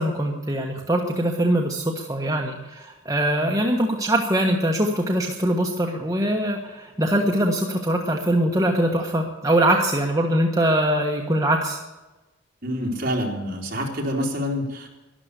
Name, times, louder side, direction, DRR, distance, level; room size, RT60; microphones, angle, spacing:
voice 1, 0.0-11.8, right 1 dB, 15° right, 1 dB, 1.3 m, -22 dB
voice 2, 12.6-14.9, equal, 50° right, -1 dB, 3.7 m, -27 dB
12.5 x 11.5 x 8.2 m, 1.1 s
head